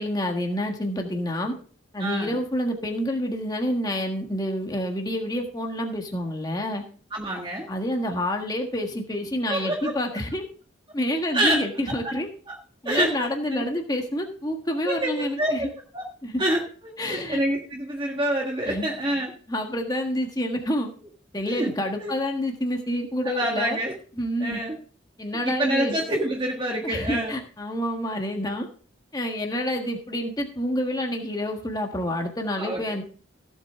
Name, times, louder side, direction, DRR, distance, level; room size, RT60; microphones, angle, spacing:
voice 1, 0.0-1.5 1.9-6.8 7.7-10.4 10.9-12.3 12.8-15.7 16.2-16.4 17.0-17.4 18.7-18.9 19.5-20.9 21.3-23.8 24.2-24.6 25.2-26.0 26.8-28.7 29.1-33.0, left 1 dB, 20° left, 3 dB, 1.5 m, -28 dB
voice 2, 2.0-2.4 7.1-7.7 9.5-9.9 11.3-12.2 12.5-12.6 12.8-13.6 14.8-15.7 15.9-16.0 16.4-19.3 21.4-21.7 22.0-22.1 23.2-23.9 24.4-24.8 25.4-27.4 32.5-33.0, right 1 dB, 25° right, 0 dB, 1.7 m, -27 dB
16.0 x 7.7 x 3.7 m, 0.41 s
head